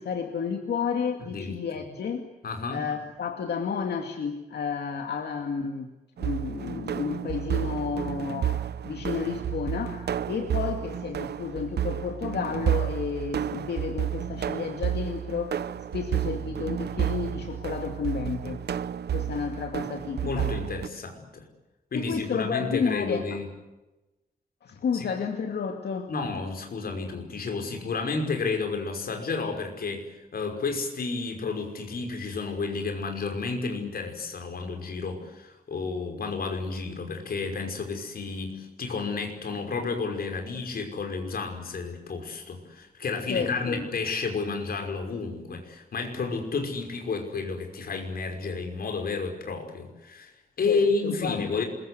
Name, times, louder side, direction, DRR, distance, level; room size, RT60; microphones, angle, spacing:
voice 1, 0.0-2.2 2.7-5.9 6.2-15.6 15.9-18.6 19.1-20.5 21.9-23.4 24.6-26.1 43.3-43.9 50.7-51.6, left 6 dB, 85° left, 5 dB, 2.4 m, -31 dB
voice 2, 1.2-1.5 2.4-2.8 20.2-21.5 21.9-23.5 24.9-25.1 26.1-51.6, left 4 dB, 65° left, 4 dB, 5.7 m, -31 dB
sound 1, 6.2-20.9, right 10 dB, 85° right, 0.9 m, -31 dB
27.0 x 22.5 x 8.2 m, 1.0 s
wide cardioid pair, 175°, 17 cm